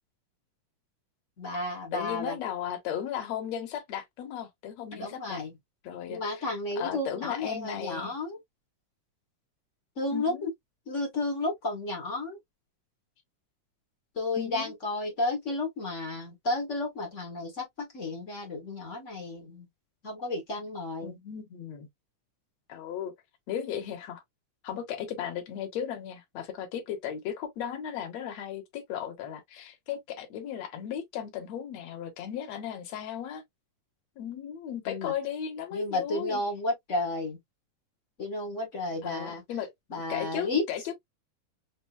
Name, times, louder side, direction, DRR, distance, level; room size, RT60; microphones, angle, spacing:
voice 1, 1.4-2.4 4.9-5.5 6.1-8.4 10.0-10.5 10.9-12.4 14.1-19.7 20.0-21.1 34.9-35.1 35.7-37.4 38.2-39.4 39.9-40.6, left 2 dB, 40° left, 1.0 m, -32 dB
voice 2, 1.9-5.4 5.8-6.5 6.8-8.1 10.1-10.5 14.3-14.7 21.0-21.9 22.7-23.1 23.5-24.2 24.6-33.4 34.2-36.4 39.0-39.7 40.1-40.9, left 9 dB, 65° left, 2.2 m, -36 dB
5.5 x 2.6 x 2.4 m
omnidirectional pair, 3.4 m